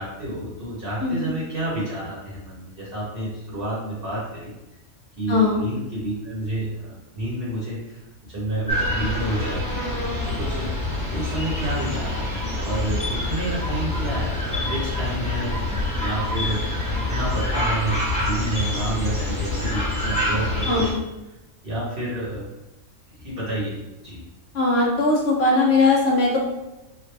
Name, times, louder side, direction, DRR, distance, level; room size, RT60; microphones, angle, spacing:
voice 1, 0.0-4.5 5.2-8.0 8.3-9.9 10.2-10.8 11.1-16.7 17.1-20.9 21.6-22.5 23.1-23.8 24.0-24.2, right 1 dB, 50° right, -8 dB, 1.2 m, -29 dB
voice 2, 5.3-5.6 20.7-21.0 24.5-26.4, left 3 dB, 60° left, -3 dB, 0.9 m, -19 dB
sound 1, 8.7-20.9, left 1 dB, 5° left, 0.7 m, -26 dB
3.2 x 2.4 x 3.2 m, 0.98 s
omnidirectional pair, 1.3 m